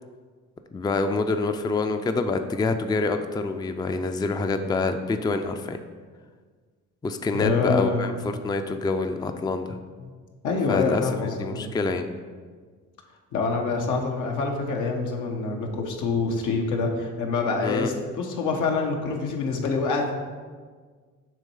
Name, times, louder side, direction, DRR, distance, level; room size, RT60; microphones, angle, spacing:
voice 1, 0.7-5.8 7.0-9.8 10.7-12.1 17.6-17.9, left 3 dB, 15° left, 7 dB, 0.4 m, -26 dB
voice 2, 7.4-8.1 10.0-10.1 10.4-11.7 13.3-20.1, left 4 dB, 85° left, 2 dB, 1.0 m, -26 dB
7.3 x 3.1 x 5.4 m, 1.5 s
cardioid pair, 90°, 30 cm